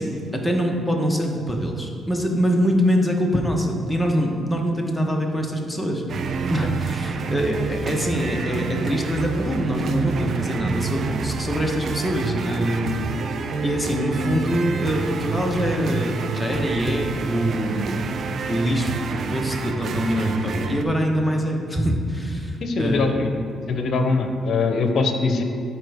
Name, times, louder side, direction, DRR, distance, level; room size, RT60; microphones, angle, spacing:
voice 1, 0.0-6.0 6.5-12.9 13.6-18.0 18.5-23.2, equal, 5° left, 1 dB, 1.1 m, -24 dB
sound 1, 6.1-20.8, right 5 dB, 55° right, 0.5 m, -28 dB
voice 2, 22.6-23.3 23.7-25.4, left 3 dB, 60° left, 6 dB, 0.8 m, -22 dB
12.0 x 4.6 x 3.5 m, 2.3 s
cardioid pair, 90°, 0 cm